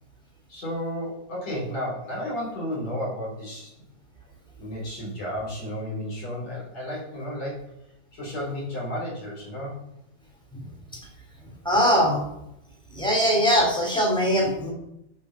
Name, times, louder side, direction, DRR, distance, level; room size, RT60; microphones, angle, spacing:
voice 1, 0.5-3.7 4.6-7.7 8.1-9.8, equal, 40° left, -5 dB, 5.3 m, -32 dB
voice 2, 11.6-12.2 12.9-14.7, equal, ahead, -2 dB, 2.3 m, -21 dB
11.5 x 6.0 x 5.6 m, 0.82 s
omnidirectional pair, 4.9 m